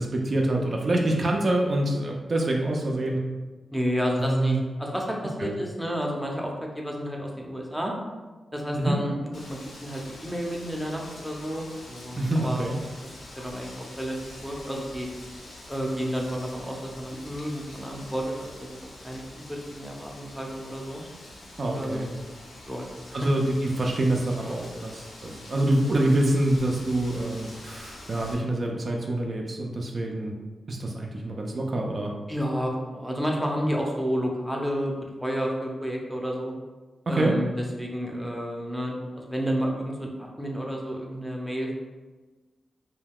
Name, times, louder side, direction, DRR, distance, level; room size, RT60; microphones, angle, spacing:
voice 1, 0.0-3.2 4.2-4.6 5.4-5.5 8.7-9.0 12.2-12.8 21.6-22.1 23.1-30.3 30.7-32.1 37.1-37.3, right 1 dB, 50° right, 0 dB, 0.4 m, -26 dB
voice 2, 3.7-7.9 8.5-12.6 13.4-14.2 14.4-15.1 15.7-18.8 19.0-21.0 21.7-22.4 22.7-22.9 32.3-36.5 37.1-37.5 37.8-40.1 40.4-41.7, equal, ahead, -1 dB, 0.5 m, -31 dB
Wind, 9.3-28.3, left 1 dB, 80° left, 0.6 m, -45 dB
2.3 x 2.2 x 3.5 m, 1.2 s
cardioid pair, 70°, 0 cm